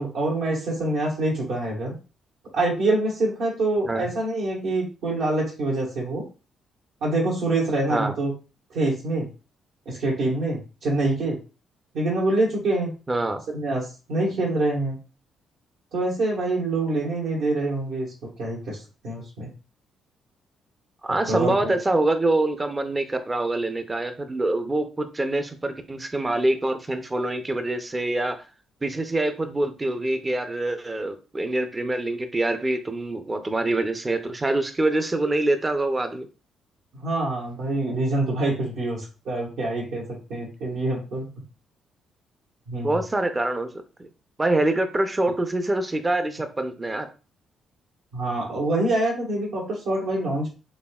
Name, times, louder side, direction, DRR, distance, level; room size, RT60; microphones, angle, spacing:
voice 1, 0.0-1.9 2.5-6.2 7.0-8.3 8.7-9.3 9.8-11.4 11.9-12.9 13.5-15.0 15.9-19.5 21.3-21.7 36.9-40.0 40.3-41.3 42.7-43.0 48.1-50.5, right 2 dB, 80° right, -4 dB, 1.4 m, -25 dB
voice 2, 13.1-13.4 21.0-28.4 28.8-36.3 42.8-43.7 44.4-47.1, right 2 dB, 20° right, 7 dB, 0.5 m, -25 dB
4.1 x 3.4 x 2.3 m, 0.33 s
cardioid pair, 90°, 0 cm